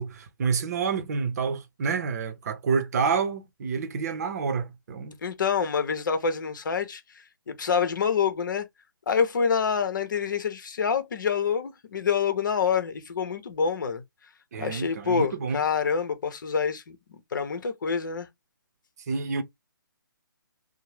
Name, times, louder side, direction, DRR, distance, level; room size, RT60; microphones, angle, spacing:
voice 1, 0.0-5.1 14.5-15.6 19.1-19.4, right 5 dB, 45° right, 0.7 m, -28 dB
voice 2, 5.2-7.0 7.5-8.7 9.1-14.0 14.6-18.3, left 6 dB, 60° left, 0.8 m, -27 dB
2.7 x 2.1 x 3.1 m
figure-of-eight pair, 145°, 12 cm